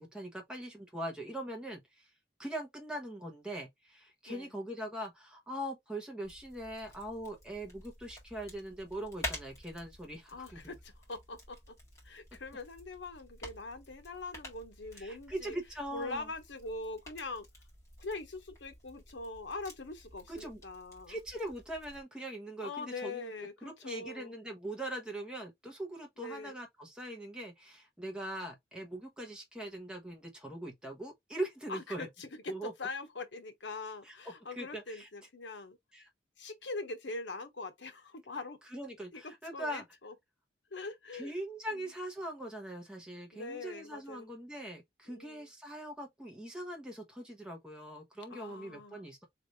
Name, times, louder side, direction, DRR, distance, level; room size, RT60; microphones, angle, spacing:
voice 1, 0.0-2.1 2.4-10.7 15.0-16.3 20.3-20.6 21.1-23.3 23.6-32.1 32.5-32.7 34.1-34.2 34.6-35.1 35.9-36.1 38.7-39.8 41.1-49.3, right 1 dB, 5° right, 1.0 m, -41 dB
sound 1, 6.2-22.0, left 1 dB, 15° left, 1.8 m, -50 dB
voice 2, 10.3-11.7 12.0-15.6 15.9-17.5 18.0-21.2 22.6-24.4 26.2-26.6 31.7-35.8 36.4-38.6 39.1-39.2 39.5-40.1 40.7-41.3 41.7-41.9 43.3-44.3 45.1-45.5 48.3-49.1, left 3 dB, 75° left, 1.0 m, -43 dB
3.3 x 2.5 x 4.0 m
head